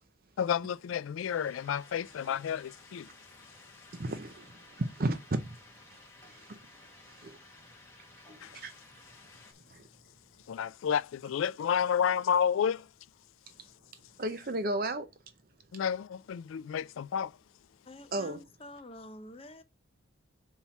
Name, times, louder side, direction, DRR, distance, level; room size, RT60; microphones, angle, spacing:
voice 1, 0.4-3.1 8.4-8.5 10.5-12.9 15.7-17.3, left 8 dB, 80° left, 0.3 m, -30 dB
sound 1, 1.3-9.5, left 2 dB, 15° left, 1.6 m, -55 dB
voice 2, 3.9-5.5 6.3-6.6 7.1-7.4 8.5-8.7 9.7-9.8 14.2-15.1 18.1-18.4, right 2 dB, 45° right, 0.6 m, -33 dB
voice 3, 17.9-19.6, left 1 dB, 30° left, 0.6 m, -48 dB
5.6 x 4.2 x 5.8 m
head